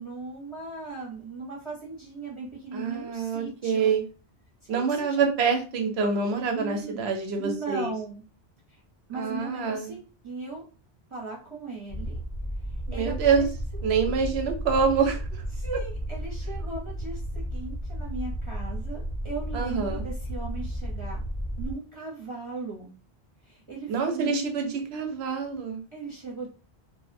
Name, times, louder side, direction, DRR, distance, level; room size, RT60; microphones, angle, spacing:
voice 1, 0.0-3.9 4.6-5.2 6.5-7.0 7.4-8.2 8.7-8.8 9.1-10.0 10.2-10.6 11.1-12.2 12.9-13.5 15.5-17.2 17.5-21.2 21.6-22.9 23.4-24.4 25.9-26.5, right 3 dB, 30° right, -5 dB, 0.7 m, -37 dB
voice 2, 2.7-4.0 4.7-7.9 9.2-9.9 12.9-13.4 13.8-15.4 19.5-20.0 23.9-25.8, right 5 dB, 80° right, 4 dB, 0.9 m, -26 dB
sound 1, 11.9-21.7, equal, 45° left, 0.4 m, -33 dB
2.5 x 2.0 x 2.5 m, 0.35 s
omnidirectional pair, 1.1 m